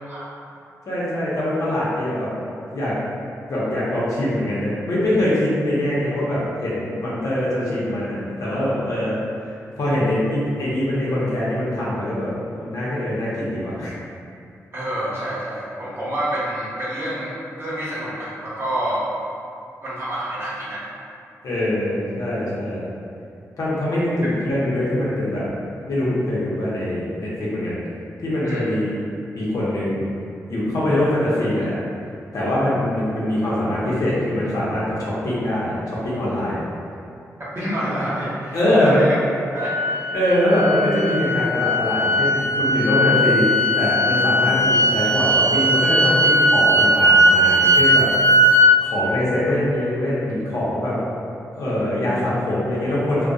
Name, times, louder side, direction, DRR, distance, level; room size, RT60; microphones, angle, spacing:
voice 1, 0.9-2.3 2.7-2.9 3.5-9.1 9.8-12.3 12.5-13.9 21.4-22.8 23.6-25.5 25.8-27.8 28.2-28.9 29.3-30.1 30.5-31.7 32.3-36.6 38.5-39.0 40.1-43.5 43.7-48.1 48.8-51.0 51.6-53.3, left 1 dB, 70° left, -8 dB, 0.7 m, -23 dB
voice 2, 14.7-17.3 17.6-19.0 19.8-20.9 28.4-28.7 37.5-39.1 39.5-39.7, right 1 dB, 45° right, -10 dB, 0.9 m, -27 dB
sound 1, 39.5-48.7, equal, 60° right, 0.4 m, -18 dB
2.6 x 2.1 x 2.3 m, 2.5 s
cardioid pair, 65°, 6 cm